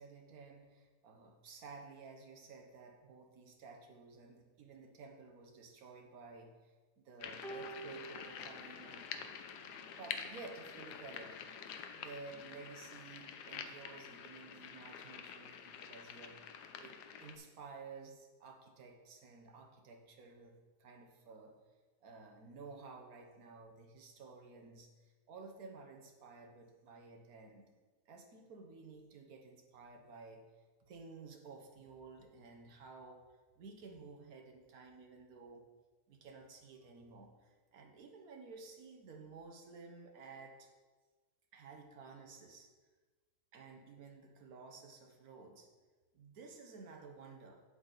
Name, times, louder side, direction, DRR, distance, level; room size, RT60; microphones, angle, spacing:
voice 1, 0.0-9.1 9.8-11.4 11.9-16.9 17.2-21.5 22.0-27.7 28.1-30.4 30.9-33.2 33.6-35.6 36.1-40.7 41.5-42.7 43.5-45.7 46.1-47.6, right 4 dB, 65° right, 3 dB, 1.5 m, -53 dB
sound 1, 7.2-17.4, left 7 dB, 85° left, 1.3 m, -48 dB
sound 2, 7.4-9.9 10.9-11.1, right 3 dB, 35° right, 1.1 m, -51 dB
8.0 x 7.9 x 4.0 m, 1.3 s
omnidirectional pair, 1.7 m